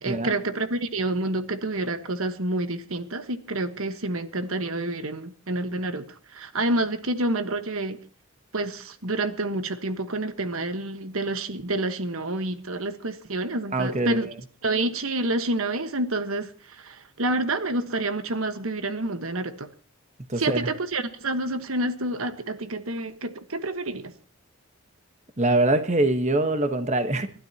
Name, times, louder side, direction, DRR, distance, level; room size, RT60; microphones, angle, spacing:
voice 1, 0.0-8.0 8.5-14.3 14.6-19.7 20.4-24.1, right 2 dB, 70° right, 10 dB, 1.3 m, -28 dB
voice 2, 13.7-14.3 20.3-20.7 25.4-27.3, right 2 dB, 30° right, 8 dB, 1.2 m, -23 dB
29.5 x 12.5 x 2.9 m, 0.39 s
head